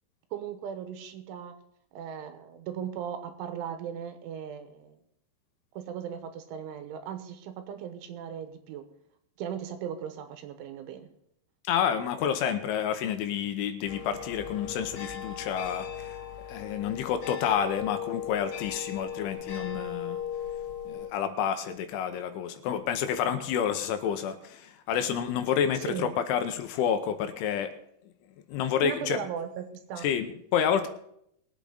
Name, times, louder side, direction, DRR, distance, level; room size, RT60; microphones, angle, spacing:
voice 1, 0.3-1.5 1.9-5.0 5.8-8.9 9.4-11.1 25.8-26.1 28.8-30.1, right 8 dB, 80° right, 8 dB, 3.4 m, -37 dB
voice 2, 11.6-16.2 16.5-20.2 20.9-27.7 28.5-29.2 30.0-30.9, left 8 dB, 80° left, 9 dB, 3.1 m, -29 dB
sound 1, 13.9-21.1, left 8 dB, 65° left, 3.4 m, -37 dB
22.0 x 8.4 x 3.9 m, 0.73 s
omnidirectional pair, 5.8 m